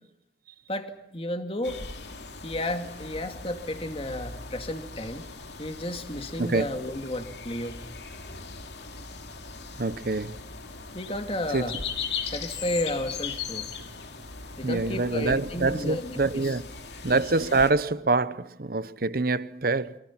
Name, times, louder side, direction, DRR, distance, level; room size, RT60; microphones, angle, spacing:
voice 1, 0.7-1.8 2.4-5.2 5.6-7.8 10.9-11.8 12.2-13.7 14.6-16.6, left 1 dB, 30° left, 2.2 m, -32 dB
sound 1, 1.6-17.7, left 5 dB, 70° left, 2.6 m, -39 dB
voice 2, 9.8-10.4 11.5-11.6 14.6-16.6 17.0-20.0, right 3 dB, 55° right, 0.9 m, -25 dB
29.5 x 24.0 x 6.0 m
head